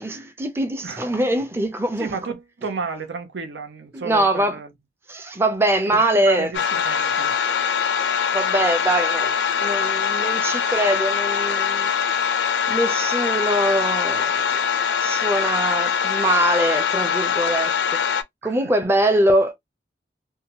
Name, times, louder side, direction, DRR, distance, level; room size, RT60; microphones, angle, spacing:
voice 1, 0.0-2.2 3.9-4.6 5.1-6.5 8.3-11.9 12.7-14.6 15.0-18.0 18.4-19.6, right 1 dB, 15° right, 0.5 m, -22 dB
voice 2, 2.0-4.7 5.9-7.3 18.4-18.7, right 4 dB, 90° right, 0.6 m, -32 dB
sound 1, 6.5-18.2, left 7 dB, 85° left, 0.5 m, -23 dB
2.7 x 2.2 x 2.8 m
head